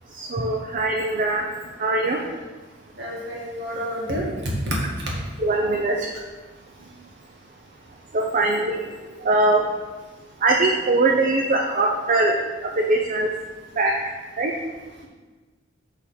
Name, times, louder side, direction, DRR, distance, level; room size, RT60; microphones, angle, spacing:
voice 1, 0.2-1.4 1.8-2.2 5.4-6.0 8.1-8.8 9.2-9.6 10.4-12.3 12.8-13.4 13.8-13.9 14.4-14.5, right 2 dB, 40° right, 0 dB, 0.5 m, -21 dB
voice 2, 3.0-5.1 6.8-7.0, equal, 55° right, -3 dB, 1.8 m, -29 dB
7.1 x 3.7 x 6.2 m, 1.3 s
head